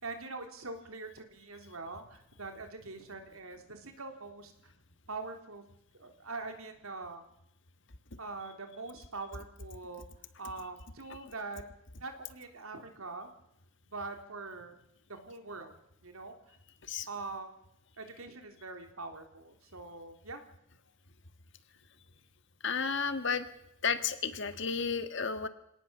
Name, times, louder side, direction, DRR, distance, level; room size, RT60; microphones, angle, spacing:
voice 1, 0.0-4.5 5.1-5.6 5.9-7.2 8.2-10.1 10.4-11.6 12.0-13.3 13.9-14.7 15.1-15.8 16.0-16.6 17.1-17.5 18.0-20.4, right 3 dB, 90° right, 6 dB, 3.4 m, -43 dB
voice 2, 22.6-23.5 23.8-25.5, left 5 dB, 60° left, 10 dB, 1.7 m, -32 dB
26.0 x 18.0 x 7.0 m, 0.79 s
head